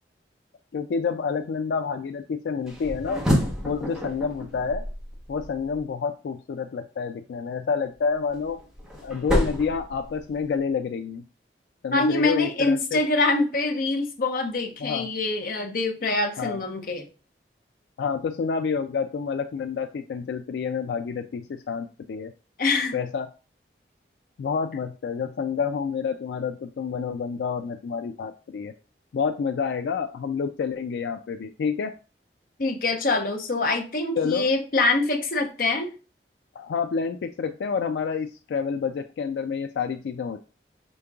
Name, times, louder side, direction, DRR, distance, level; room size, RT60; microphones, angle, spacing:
voice 1, 0.7-3.2 3.6-4.8 5.3-8.6 9.0-11.2 11.8-13.0 14.8-15.1 16.4-16.6 18.0-22.3 22.9-23.3 24.4-28.7 29.1-31.9 34.2-34.5 36.6-40.4, left 5 dB, 80° left, 7 dB, 0.3 m, -28 dB
sound 1, 2.7-5.8 8.0-10.6, equal, 5° right, 0.9 m, -29 dB
voice 2, 11.9-17.1 22.6-22.9 32.6-35.9, left 3 dB, 50° left, 3 dB, 0.7 m, -25 dB
5.1 x 3.7 x 2.3 m, 0.34 s
head